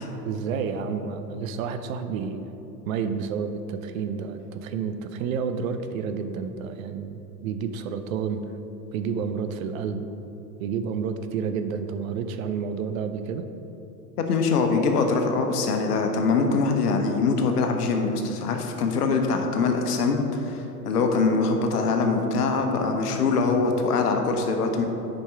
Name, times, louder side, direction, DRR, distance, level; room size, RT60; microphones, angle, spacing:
voice 1, 0.2-2.4 2.9-8.5 8.9-10.1 10.6-13.5, right 6 dB, 55° right, 8 dB, 0.7 m, -30 dB
voice 2, 14.2-24.9, left 4 dB, 65° left, 4 dB, 1.1 m, -23 dB
7.2 x 5.3 x 4.7 m, 3.0 s
figure-of-eight pair, 95°, 49 cm